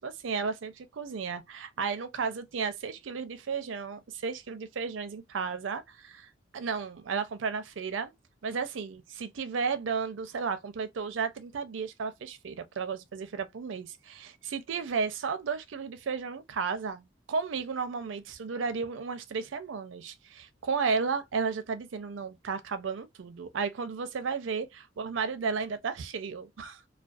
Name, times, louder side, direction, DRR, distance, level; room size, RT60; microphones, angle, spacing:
voice 1, 0.0-8.2 8.4-26.8, right 5 dB, 85° right, 0.5 m, -33 dB
2.3 x 2.2 x 2.5 m
head